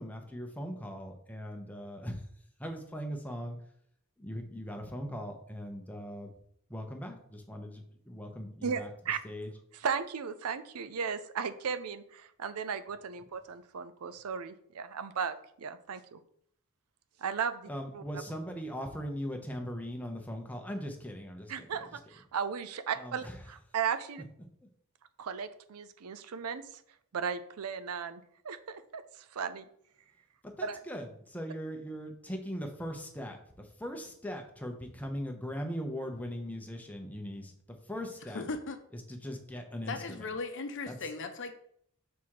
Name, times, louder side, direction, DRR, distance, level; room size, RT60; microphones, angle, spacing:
voice 1, 0.0-2.2 2.6-3.6 4.2-6.3 6.7-8.9 9.2-9.5 17.7-21.7 23.0-23.3 30.4-33.4 33.8-37.5 37.9-38.4 39.1-40.2 40.9-41.0, equal, 5° left, 3 dB, 0.8 m, -39 dB
voice 2, 8.6-9.2 9.7-16.2 17.2-18.0 21.5-24.2 25.2-26.8 27.1-29.6 30.6-30.8, right 6 dB, 85° right, 11 dB, 0.5 m, -36 dB
voice 3, 38.3-38.8 39.9-41.5, left 3 dB, 55° left, 7 dB, 0.7 m, -37 dB
5.8 x 3.6 x 4.7 m, 0.67 s
head